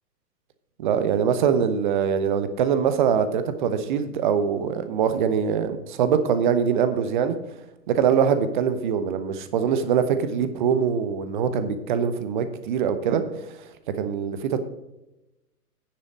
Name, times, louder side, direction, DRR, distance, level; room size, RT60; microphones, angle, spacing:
voice 1, 0.8-7.4 7.9-13.2 13.5-13.6 13.9-14.6, right 7 dB, 30° right, 11 dB, 0.9 m, -23 dB
9.7 x 7.2 x 5.2 m, 0.96 s
figure-of-eight pair, 115°, 47 cm